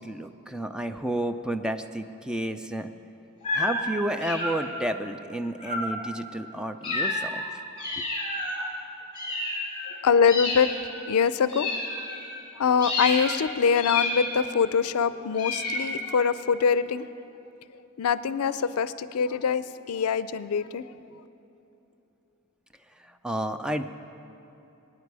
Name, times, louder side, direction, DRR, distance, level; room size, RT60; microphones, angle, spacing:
voice 1, 0.0-2.9 3.5-7.6 23.0-23.9, right 1 dB, 5° right, 8 dB, 0.4 m, -31 dB
sound 1, 3.4-3.8 4.2-4.9 5.6-6.0 6.8-7.4 7.8-8.6 9.1-9.9 10.2-10.9 11.5-12.4 12.8-13.4 13.7-14.6 15.4-16.3, left 2 dB, 25° left, 3.4 m, -30 dB
voice 2, 10.0-10.7 11.1-11.8 12.6-17.1 18.0-20.9, left 6 dB, 85° left, 15 dB, 0.4 m, -24 dB
21.5 x 9.5 x 4.8 m, 2.9 s
head